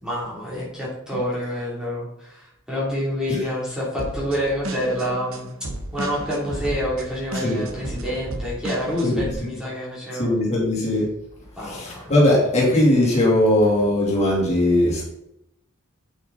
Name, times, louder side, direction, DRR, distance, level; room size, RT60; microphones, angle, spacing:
voice 1, 0.0-5.5 5.9-10.3 11.6-12.1, equal, 5° right, -6 dB, 3.1 m, -27 dB
sound 1, 4.0-9.3, right 1 dB, 65° right, 1.1 m, -33 dB
voice 2, 9.0-9.5 10.2-11.1 11.6-15.0, left 1 dB, 30° left, -4 dB, 3.1 m, -19 dB
8.6 x 8.4 x 4.1 m, 0.79 s
head